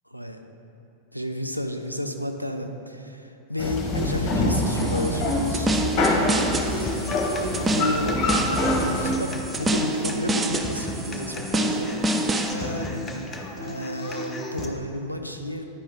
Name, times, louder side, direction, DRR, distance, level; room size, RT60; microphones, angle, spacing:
voice 1, 1.1-15.7, left 1 dB, 90° right, 5 dB, 0.4 m, -32 dB
sound 1, 3.6-9.1, left 1 dB, 35° left, 1.2 m, -25 dB
sound 2, 4.5-12.5, right 1 dB, 15° right, 0.5 m, -28 dB
Human voice / Acoustic guitar, 6.7-14.6, left 2 dB, 15° left, 0.8 m, -35 dB
9.9 x 5.2 x 3.7 m, 2.8 s
figure-of-eight pair, 90°, 0 cm